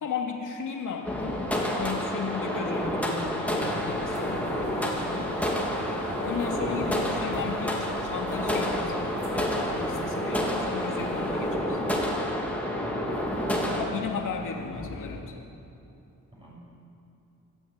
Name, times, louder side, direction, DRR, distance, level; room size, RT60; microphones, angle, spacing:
voice 1, 0.0-5.4 6.2-11.8 13.7-15.5, left 5 dB, 85° left, 2 dB, 2.7 m, -35 dB
sound 1, 1.0-13.8, equal, 5° left, 3.3 m, -29 dB
sound 2, 1.9-11.6, right 2 dB, 70° right, 5.4 m, -42 dB
sound 3, 3.5-15.2, left 4 dB, 65° left, 2.1 m, -43 dB
voice 2, 12.8-13.8 16.3-16.5, right 1 dB, 15° right, -5 dB, 6.9 m, -45 dB
26.5 x 13.5 x 8.9 m, 2.8 s
wide cardioid pair, 130°, 31 cm